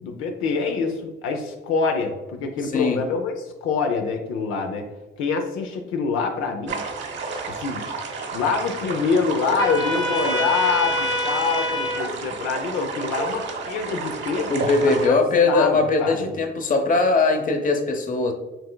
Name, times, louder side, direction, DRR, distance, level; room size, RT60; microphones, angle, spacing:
voice 1, 0.0-4.9 5.2-6.8 7.5-7.8 8.3-15.2 15.5-16.3, left 4 dB, 85° left, 3 dB, 0.6 m, -25 dB
voice 2, 2.6-3.0 14.5-18.3, left 3 dB, 40° left, 5 dB, 0.8 m, -20 dB
sound 1, 6.7-15.1, right 4 dB, 65° right, 0.9 m, -31 dB
Trumpet, 9.6-12.1, left 1 dB, 20° left, 1.0 m, -26 dB
6.0 x 3.3 x 2.3 m, 1.1 s
cardioid pair, 90°, 20 cm